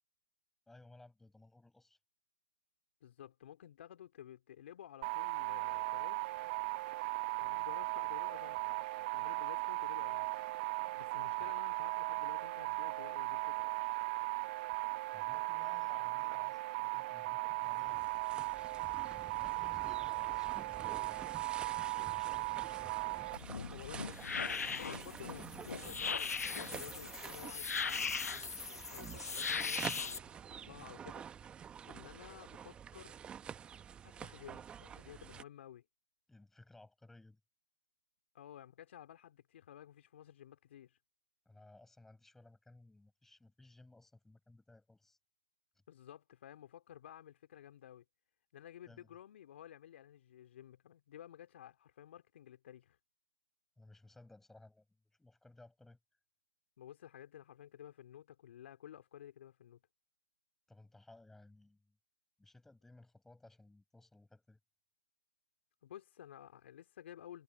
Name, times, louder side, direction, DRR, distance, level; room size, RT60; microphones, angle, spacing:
voice 1, 0.7-2.0 11.4-11.5 15.1-18.1 19.1-21.3 22.0-23.0 36.3-37.4 41.5-45.2 48.9-49.2 53.8-56.0 60.7-62.0 62.4-64.6, left 2 dB, 5° left, 7.4 m, -60 dB
voice 2, 3.0-6.3 7.4-10.3 11.0-13.7 23.7-28.1 28.9-31.3 31.8-33.2 34.0-35.8 38.3-41.0 45.9-48.0 48.5-53.0 56.8-59.8 65.8-67.4, left 11 dB, 50° left, 2.9 m, -53 dB
sound 1, 5.0-23.4, right 21 dB, 30° right, 0.8 m, -37 dB
sound 2, 17.5-35.4, right 8 dB, 10° right, 1.2 m, -49 dB
sound 3, 23.3-30.2, left 5 dB, 80° left, 0.7 m, -39 dB
hypercardioid pair, 140°, 8 cm